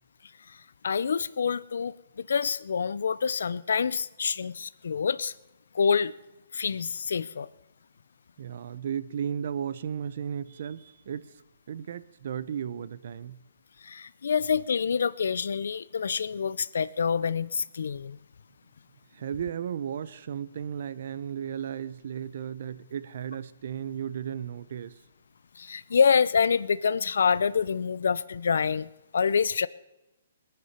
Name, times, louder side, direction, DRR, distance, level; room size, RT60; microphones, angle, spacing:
voice 1, 0.5-5.3 5.7-6.1 6.5-7.5 13.8-18.2 25.6-29.7, left 6 dB, 80° left, 18 dB, 0.6 m, -27 dB
voice 2, 8.4-11.3 11.7-13.4 19.1-24.9, right 8 dB, 60° right, 16 dB, 0.9 m, -35 dB
20.0 x 9.3 x 6.7 m, 0.96 s
hypercardioid pair, 155°, 0 cm